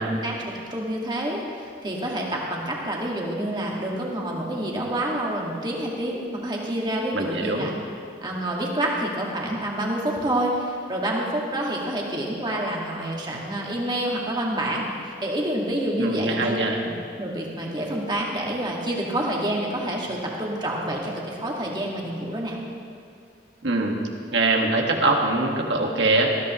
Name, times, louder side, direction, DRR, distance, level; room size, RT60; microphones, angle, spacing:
voice 1, 0.1-7.7 8.2-16.9 17.2-22.6, right 1 dB, 25° right, -2 dB, 1.9 m, -28 dB
voice 2, 7.1-7.7 16.0-16.8 23.6-23.9 24.3-26.3, right 2 dB, 70° right, 1 dB, 1.7 m, -23 dB
19.5 x 14.0 x 3.1 m, 2.4 s
head